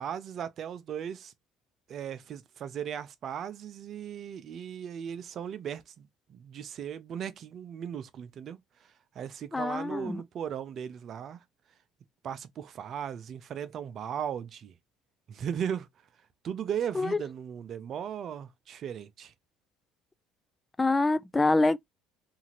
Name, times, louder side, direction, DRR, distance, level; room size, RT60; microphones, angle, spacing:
voice 1, 0.0-1.3 1.9-8.6 9.2-11.4 12.2-14.7 15.3-15.9 16.4-19.3, right 8 dB, 50° right, 0.5 m, -37 dB
voice 2, 9.5-10.2 16.9-17.2 20.8-21.8, left 2 dB, 20° left, 0.3 m, -25 dB
2.8 x 2.5 x 2.8 m
hypercardioid pair, 70°, 0 cm